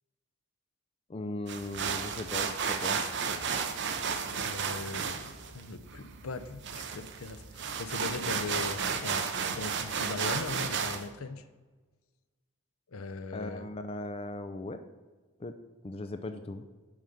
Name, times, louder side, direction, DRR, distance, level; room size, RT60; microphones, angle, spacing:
voice 1, 1.1-3.0 13.3-14.8 15.4-15.6 15.8-16.6, left 2 dB, 25° left, 8 dB, 0.4 m, -38 dB
sound 1, 1.5-11.0, right 6 dB, 55° right, 0.7 m, -33 dB
voice 2, 4.4-11.4 12.9-13.7, left 3 dB, 70° left, 11 dB, 0.6 m, -40 dB
7.4 x 4.9 x 6.9 m, 1.3 s
head